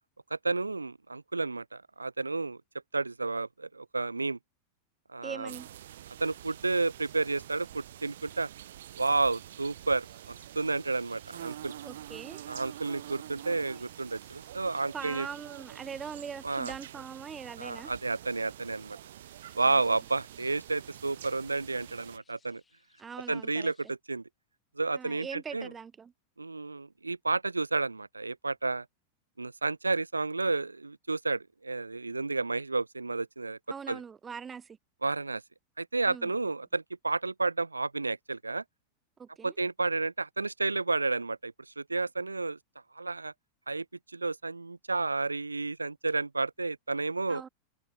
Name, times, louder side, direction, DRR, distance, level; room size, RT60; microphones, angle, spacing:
voice 1, 0.3-2.6 2.9-4.4 5.1-5.6 6.2-8.5 9.0-11.7 12.5-15.3 16.4-16.7 17.6-19.0 19.5-22.6 23.3-24.2 24.8-25.7 26.4-28.9 29.4-33.6 33.9-34.0 35.0-35.4 35.8-38.6 39.4-42.6 42.9-43.3 43.7-47.4, right 3 dB, 80° right, 0.7 m, -31 dB
voice 2, 5.2-5.7 11.8-12.4 14.9-17.9 23.0-23.7 24.9-26.1 33.7-34.8 36.1-36.3 39.2-39.5 47.3-47.5, right 6 dB, 20° right, 0.4 m, -42 dB
sound 1, 5.5-22.2, right 12 dB, 60° right, 1.7 m, -47 dB
sound 2, 6.9-23.9, left 5 dB, 15° left, 7.2 m, -70 dB
figure-of-eight pair, 90°, 0 cm